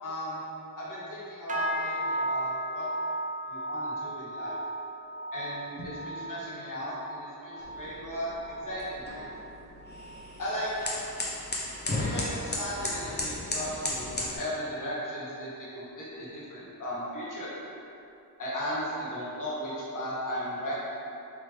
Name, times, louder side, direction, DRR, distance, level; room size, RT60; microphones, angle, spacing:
voice 1, 0.0-0.4 0.7-2.9 3.5-4.6 5.3-9.3 10.4-10.9 11.8-17.5 18.4-20.7, equal, 55° left, -8 dB, 1.3 m, -36 dB
sound 1, 1.5-11.0 11.3-11.8 12.2-12.5 13.1-13.2, right 1 dB, 20° right, 0.4 m, -36 dB
sound 2, 7.6-14.4, left 2 dB, 25° left, 0.8 m, -35 dB
3.8 x 2.9 x 3.1 m, 2.7 s
cardioid pair, 65°, 38 cm